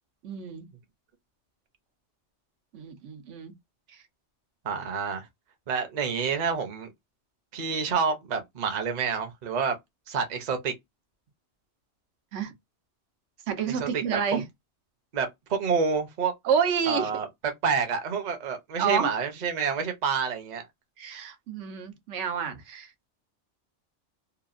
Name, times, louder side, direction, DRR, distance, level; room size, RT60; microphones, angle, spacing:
voice 1, 0.2-0.7 2.7-3.5 12.3-12.5 13.5-14.4 16.4-17.1 18.8-19.1 21.0-23.1, right 7 dB, 85° right, 1.0 m, -29 dB
voice 2, 4.6-5.2 5.7-6.9 7.5-9.8 10.1-10.7 13.7-14.2 15.1-16.3 16.9-20.7, right 6 dB, 45° right, 0.7 m, -28 dB
2.8 x 2.3 x 2.4 m
omnidirectional pair, 1.2 m